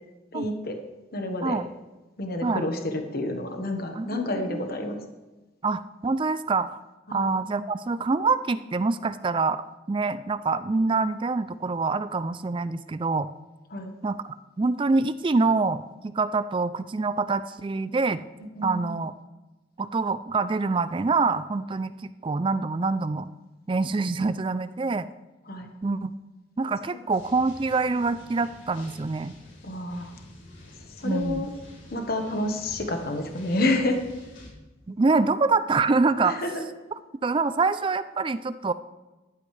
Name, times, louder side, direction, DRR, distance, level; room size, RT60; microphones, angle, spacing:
voice 1, 0.3-0.8 1.1-1.6 2.2-5.0 7.1-7.3 13.7-13.9 18.5-18.9 25.5-25.7 29.6-30.1 31.0-31.5 31.9-34.0 36.2-36.7, left 1 dB, 50° left, 4 dB, 1.3 m, -29 dB
voice 2, 5.6-6.8 7.1-9.6 9.9-13.3 14.0-14.2 14.6-18.2 18.6-19.1 19.8-23.3 23.7-25.1 25.8-26.1 26.6-29.3 31.0-31.5 34.9-36.4 37.2-38.7, right 3 dB, 25° right, 14 dB, 0.3 m, -25 dB
sound 1, 27.1-34.5, left 1 dB, 90° left, 4.5 m, -48 dB
14.5 x 11.5 x 3.3 m, 1.1 s
head